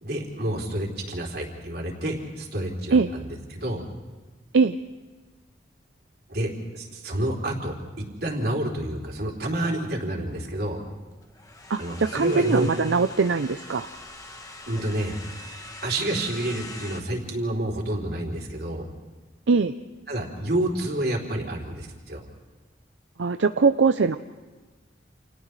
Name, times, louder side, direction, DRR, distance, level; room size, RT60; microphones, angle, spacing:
voice 1, 0.0-3.8 6.3-7.7 8.2-10.8 11.8-12.7 14.7-15.2 15.8-18.9 20.1-22.2, right 1 dB, 55° right, 0 dB, 3.6 m, -29 dB
sound 1, 10.9-17.0, left 2 dB, 20° left, 1.4 m, -43 dB
voice 2, 11.7-13.9 19.5-19.7 23.2-24.2, right 4 dB, 80° right, 9 dB, 0.6 m, -21 dB
29.5 x 28.5 x 3.3 m, 1.3 s
head